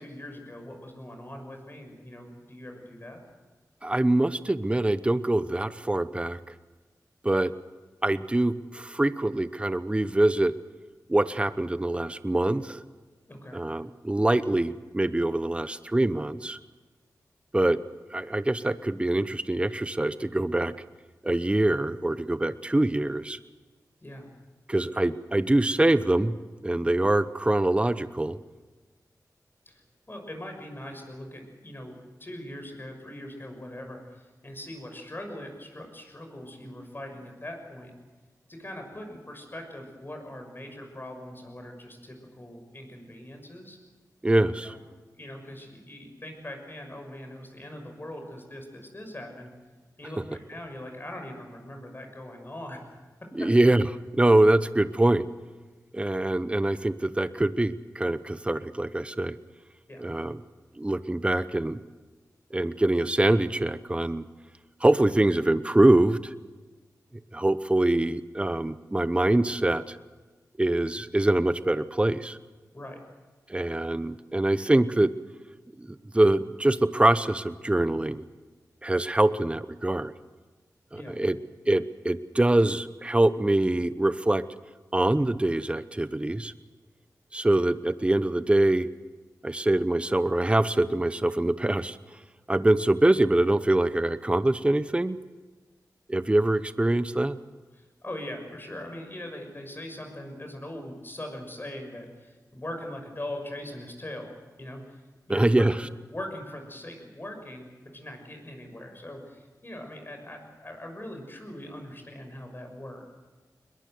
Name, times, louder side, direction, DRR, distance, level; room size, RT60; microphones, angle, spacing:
voice 1, 0.0-3.2 13.3-13.6 24.0-24.3 29.7-29.8 30.1-37.9 38.5-43.8 44.6-44.8 45.1-49.5 50.0-52.8 59.9-60.1 72.7-73.0 80.9-81.2 97.7-105.0 105.3-105.7 106.1-113.1, left 1 dB, 30° left, 4 dB, 6.2 m, -41 dB
voice 2, 3.8-6.4 7.2-7.5 8.0-10.5 11.1-12.8 13.5-16.6 17.5-17.8 18.1-20.7 21.2-23.4 24.7-26.3 26.6-28.4 44.2-44.8 53.3-53.9 54.1-55.2 55.9-59.4 60.0-60.4 60.8-61.8 62.5-64.2 64.8-66.3 67.3-70.0 70.6-72.4 73.5-75.1 75.8-75.9 76.1-78.2 78.8-80.1 80.9-81.4 81.7-84.4 84.9-86.5 87.3-88.9 89.4-92.0 92.5-95.2 96.1-97.4 105.3-105.7, right 1 dB, 15° right, 13 dB, 0.9 m, -24 dB
21.5 x 21.5 x 7.9 m, 1.3 s
wide cardioid pair, 65°, 7 cm